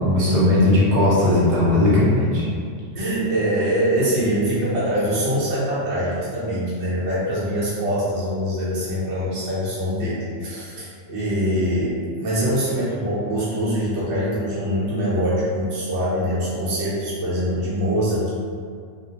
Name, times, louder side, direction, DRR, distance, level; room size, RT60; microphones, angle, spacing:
voice 1, 0.0-2.4, left 1 dB, 80° right, -8 dB, 1.2 m, -17 dB
voice 2, 2.9-18.3, equal, 60° right, -9 dB, 1.0 m, -23 dB
2.4 x 2.1 x 2.8 m, 2.2 s
omnidirectional pair, 1.4 m